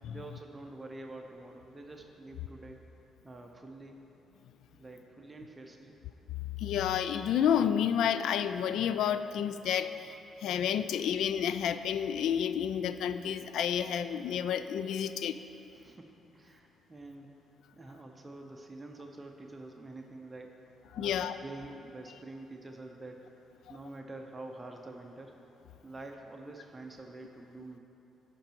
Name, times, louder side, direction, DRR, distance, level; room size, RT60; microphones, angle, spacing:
voice 1, 0.1-2.8 3.2-4.0 4.7-6.0 15.7-17.3 17.7-20.6 21.0-23.3 23.7-25.4 25.8-27.8, right 2 dB, 20° right, 2 dB, 0.7 m, -47 dB
voice 2, 6.6-10.1 10.4-15.4 20.9-21.4, left 9 dB, 80° left, 12 dB, 0.3 m, -30 dB
12.5 x 5.3 x 4.5 m, 3.0 s
cardioid pair, 90°, 0 cm